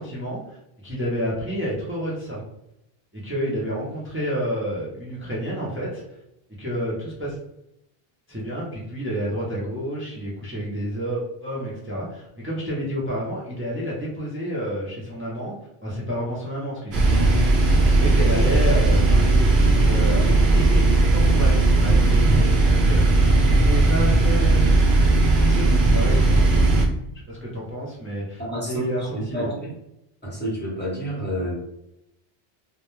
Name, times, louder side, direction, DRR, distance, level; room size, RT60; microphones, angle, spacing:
voice 1, 0.0-2.4 3.1-6.0 6.6-7.4 8.3-15.6 15.8-17.7 18.0-24.6 25.4-26.6 27.3-28.4 28.7-29.5, equal, 15° right, -5 dB, 0.5 m, -29 dB
sound 1, 16.9-26.9, right 2 dB, 60° right, 0.7 m, -17 dB
voice 2, 28.4-29.7 30.2-31.5, equal, 10° left, -6 dB, 0.9 m, -29 dB
2.2 x 2.1 x 3.0 m, 0.83 s
omnidirectional pair, 1.0 m